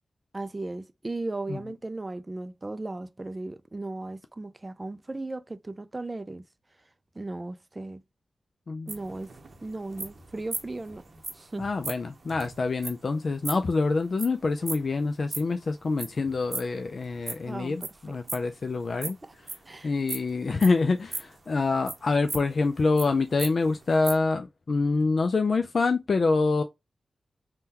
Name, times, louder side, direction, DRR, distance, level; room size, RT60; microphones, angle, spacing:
voice 1, 0.3-6.4 7.2-8.0 8.9-9.3 9.6-11.0 11.3-11.7 17.5-18.2 19.0-19.3 19.7-19.9, right 2 dB, 25° right, 0.3 m, -36 dB
sound 1, 8.9-15.6 15.9-17.9 18.2-19.7 20.1-21.4 21.9-23.1 23.4-23.5 23.8-24.2, right 3 dB, 50° right, 0.7 m, -37 dB
voice 2, 11.6-19.2 19.8-26.6, left 3 dB, 55° left, 0.3 m, -26 dB
3.6 x 2.2 x 2.8 m
cardioid pair, 75°, 0 cm